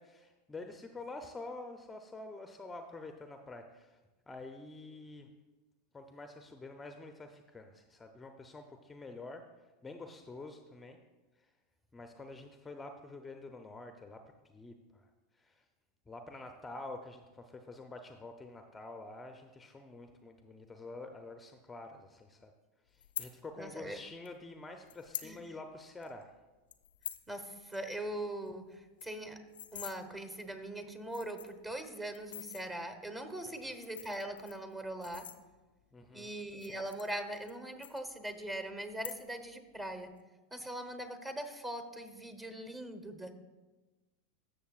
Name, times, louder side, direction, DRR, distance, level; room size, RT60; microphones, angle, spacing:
voice 1, 0.0-4.0 4.3-5.3 5.9-9.4 9.8-11.0 11.4-11.5 11.9-14.2 14.5-15.6 16.1-22.5 22.9-26.4 35.9-36.3, left 2 dB, 15° left, 5 dB, 0.6 m, -48 dB
sound 1, 23.0-23.3 24.3-24.4 24.9-25.3 25.7-25.8 26.0-26.2 26.7-27.3 27.6-27.8 28.1-28.2 28.5-28.6 28.8-30.0 30.6-30.7 31.0-31.6 32.1-32.6 33.6-35.8 36.5-37.6 37.8-38.5 38.9-39.5 39.8-40.2, left 11 dB, 80° left, 0.5 m, -45 dB
voice 2, 23.6-24.0 25.2-25.4 27.3-29.4 29.7-35.3 36.1-40.1 40.5-43.3, right 1 dB, 15° right, 7 dB, 1.1 m, -41 dB
13.5 x 6.6 x 2.4 m, 1.2 s
hypercardioid pair, 90°, 0 cm